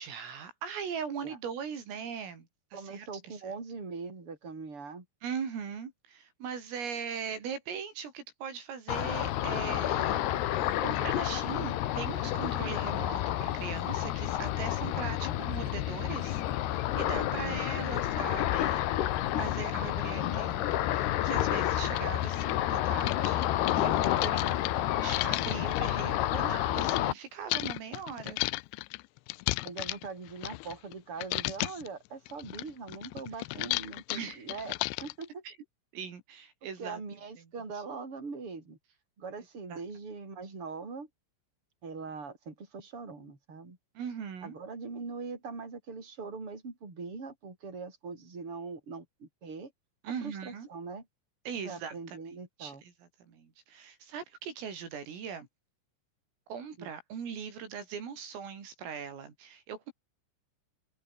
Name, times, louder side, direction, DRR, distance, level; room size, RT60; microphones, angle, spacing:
voice 1, 0.0-3.5 5.2-18.8 19.3-23.5 23.7-24.6 25.0-28.4 34.1-34.5 35.5-35.6 35.9-37.0 39.7-39.8 44.0-44.6 50.0-50.7 51.5-52.2 52.6-55.5 56.5-59.9, right 7 dB, 80° right, 7.5 m, -40 dB
voice 2, 2.7-5.0 17.3-17.6 29.6-35.4 36.8-38.8 39.2-41.1 41.8-43.8 44.4-49.7 50.0-51.1 51.6-52.8 56.8-56.9, right 4 dB, 25° right, 6.8 m, -42 dB
Ocean, 8.9-27.1, left 13 dB, 65° left, 3.0 m, -30 dB
sound 1, 20.7-20.8 21.4-21.5 21.8-27.0 27.5-30.9 31.2-31.9 32.3-35.3, left 22 dB, 85° left, 2.6 m, -35 dB
omnidirectional pair, 5.9 m